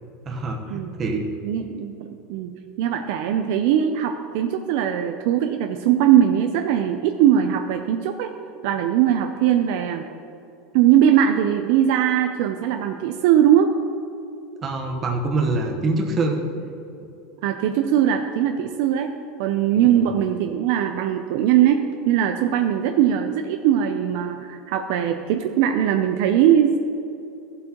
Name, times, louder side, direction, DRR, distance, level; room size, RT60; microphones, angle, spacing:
voice 1, 0.2-1.2 14.6-16.4 19.8-20.1, right 3 dB, 25° right, 1 dB, 1.1 m, -25 dB
voice 2, 1.4-2.5 2.8-8.3 8.6-10.0 10.7-13.7 17.4-19.1 19.4-26.8, right 10 dB, 60° right, 6 dB, 0.5 m, -20 dB
15.5 x 7.6 x 3.0 m, 2.7 s
supercardioid pair, 160°, 0 cm